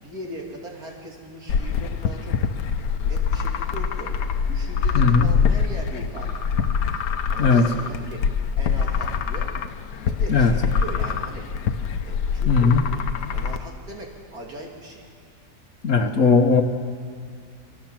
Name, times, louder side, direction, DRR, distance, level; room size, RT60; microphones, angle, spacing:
voice 1, 0.0-2.4 3.0-4.2 4.4-6.4 7.3-8.3 8.6-9.6 10.0-11.5 12.0-12.8 13.3-15.1, right 1 dB, 60° right, -1 dB, 3.5 m, -39 dB
sound 1, 1.5-13.6, left 6 dB, 85° left, 1.4 m, -24 dB
voice 2, 4.9-5.3 7.4-7.7 10.3-10.5 12.5-12.8 15.8-16.6, left 4 dB, 55° left, 6 dB, 1.3 m, -17 dB
23.5 x 17.5 x 7.4 m, 2.1 s
omnidirectional pair, 1.7 m